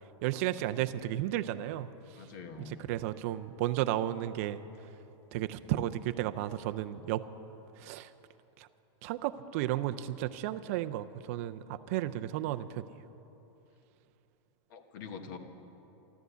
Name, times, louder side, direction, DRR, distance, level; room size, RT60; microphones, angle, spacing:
voice 1, 0.2-1.9 2.9-4.6 5.3-7.2 7.8-8.1 8.6-8.7 9.0-12.8, right 13 dB, 30° right, 10 dB, 0.4 m, -33 dB
voice 2, 2.2-2.9 5.3-5.7 14.7-15.4, left 5 dB, 40° left, 7 dB, 1.2 m, -46 dB
13.5 x 13.0 x 8.0 m, 3.0 s
supercardioid pair, 175°, 15 cm